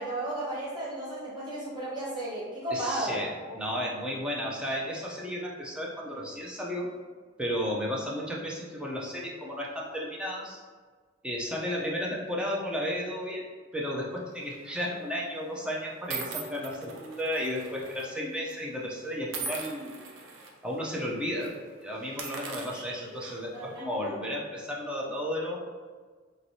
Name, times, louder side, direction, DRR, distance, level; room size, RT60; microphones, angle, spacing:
voice 1, 0.0-3.6 22.7-23.1 23.5-24.1, right 1 dB, 25° right, -11 dB, 1.1 m, -34 dB
voice 2, 2.7-6.9 7.4-10.6 11.2-13.5 13.7-20.0 20.6-21.5 21.8-25.6, equal, 5° right, -3 dB, 0.5 m, -33 dB
sound 1, 14.4-14.7 15.5-15.6 16.1-18.1 18.3-18.5 19.3-20.5 20.9-21.1 21.4-21.5 22.0-23.6, right 5 dB, 75° right, 0.5 m, -40 dB
3.0 x 3.0 x 2.7 m, 1.5 s
head